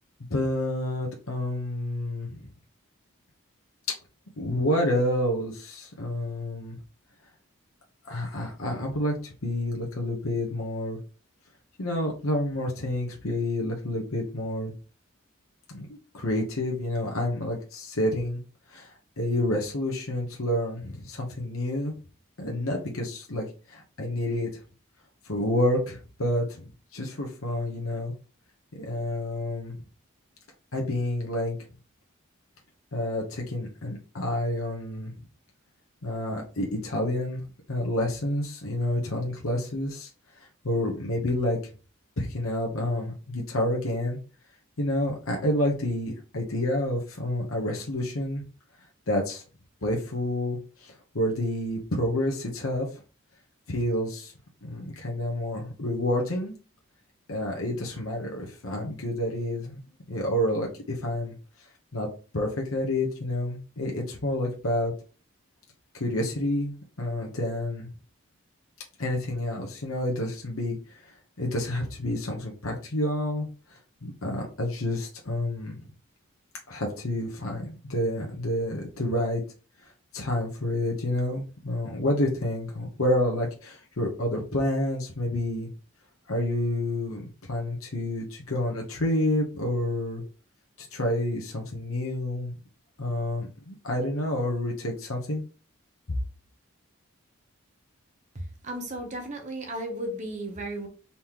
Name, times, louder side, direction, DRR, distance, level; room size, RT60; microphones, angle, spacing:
voice 1, 0.3-2.5 4.4-6.8 8.1-11.0 11.8-14.7 15.7-18.4 18.7-21.9 22.4-24.5 25.2-28.1 28.7-29.7 30.7-31.6 32.9-35.1 36.0-40.1 40.6-41.6 42.2-44.2 44.8-48.4 49.1-49.4 49.8-52.9 53.7-54.3 54.6-56.6 57.3-59.8 60.1-61.3 61.9-62.1 62.3-64.9 65.9-67.9 69.0-71.0 71.4-73.5 74.0-75.9 76.7-79.4 80.1-85.7 86.3-90.2 90.8-92.5 93.0-95.4 96.1-96.2, left 1 dB, 80° left, 0 dB, 1.0 m, -29 dB
voice 2, 98.3-100.9, right 1 dB, 35° right, 3 dB, 0.9 m, -35 dB
4.2 x 3.0 x 3.6 m, 0.35 s
head